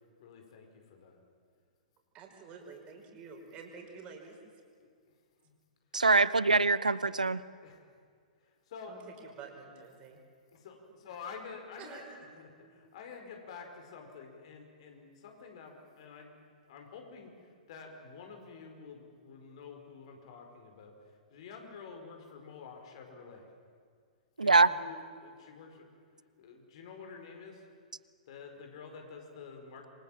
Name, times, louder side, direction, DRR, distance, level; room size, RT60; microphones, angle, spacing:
voice 1, 0.2-1.2 4.8-4.9 5.4-5.5 6.2-6.3 7.6-7.9 8.4-9.0 10.5-12.1 12.3-16.3 16.7-23.5 24.4-25.9 26.4-27.7 28.3-29.9, left 5 dB, 50° left, 4 dB, 5.1 m, -49 dB
voice 2, 2.1-4.4 8.9-10.2 11.8-12.2 12.6-12.7, right 5 dB, 30° right, 2 dB, 5.2 m, -49 dB
voice 3, 5.9-7.4 24.4-24.7, right 3 dB, 80° right, 18 dB, 0.8 m, -24 dB
27.0 x 24.5 x 7.6 m, 2.1 s
figure-of-eight pair, 110°, 4 cm